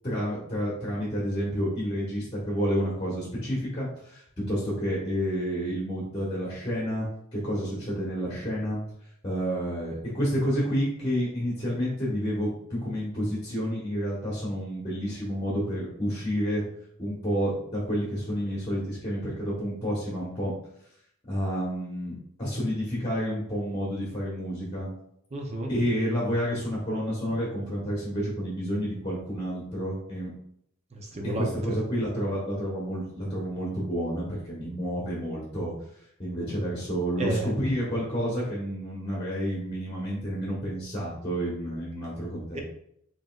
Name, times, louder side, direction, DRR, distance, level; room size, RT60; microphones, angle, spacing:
voice 1, 0.0-4.2 4.5-7.1 7.3-8.8 9.2-16.6 17.0-20.5 21.3-24.9 25.7-30.3 31.2-35.7 36.2-42.6, equal, 25° left, -6 dB, 1.2 m, -30 dB
voice 2, 25.3-25.7 30.9-31.8 37.2-37.5 42.5-42.6, right 2 dB, 30° right, 2 dB, 0.6 m, -31 dB
5.1 x 3.0 x 2.4 m, 0.71 s
head